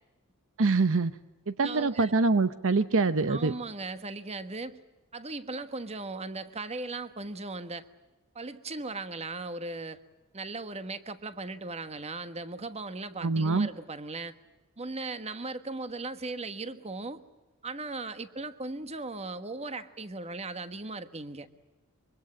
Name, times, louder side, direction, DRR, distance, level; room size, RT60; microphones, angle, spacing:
voice 1, 0.6-1.1 1.5-3.5 13.2-13.7, right 3 dB, 65° right, 13 dB, 0.8 m, -25 dB
voice 2, 1.6-2.1 3.3-4.8 5.1-7.8 8.3-10.0 10.3-14.3 14.8-17.2 17.6-21.5, right 3 dB, 30° right, 11 dB, 1.3 m, -38 dB
25.0 x 23.5 x 8.6 m, 1.2 s
head